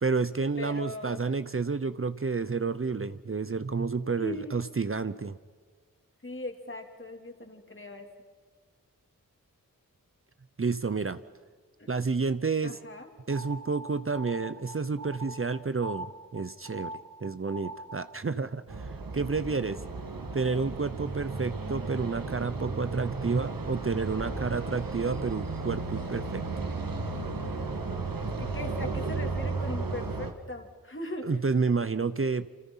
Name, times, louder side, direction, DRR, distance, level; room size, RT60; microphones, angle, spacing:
voice 1, 0.0-5.4 10.6-11.2 11.9-12.8 13.3-16.9 17.2-18.9 19.1-19.8 20.3-26.4 31.2-32.5, right 4 dB, 40° right, 13 dB, 0.8 m, -30 dB
voice 2, 0.6-1.2 4.2-4.5 6.2-8.1 11.8-11.9 12.6-13.1 27.9-28.0 28.4-31.4, left 1 dB, 35° left, 4 dB, 3.3 m, -39 dB
sound 1, 13.3-18.2, right 1 dB, 65° right, 1.1 m, -43 dB
sound 2, 18.7-30.3, right 3 dB, 85° right, 1.9 m, -34 dB
28.5 x 28.0 x 5.7 m, 1.5 s
wide cardioid pair, 70°, 33 cm